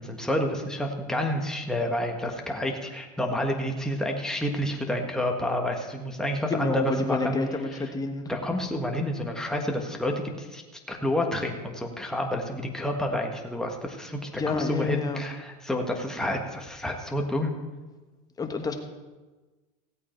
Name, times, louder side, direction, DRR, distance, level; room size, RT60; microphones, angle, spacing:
voice 1, 0.0-7.4 8.3-17.5, left 1 dB, 5° left, 1 dB, 1.5 m, -29 dB
voice 2, 6.5-8.3 14.4-15.2 18.4-18.7, left 4 dB, 20° left, 5 dB, 1.3 m, -28 dB
16.5 x 8.4 x 4.5 m, 1.2 s
supercardioid pair, 130°, 21 cm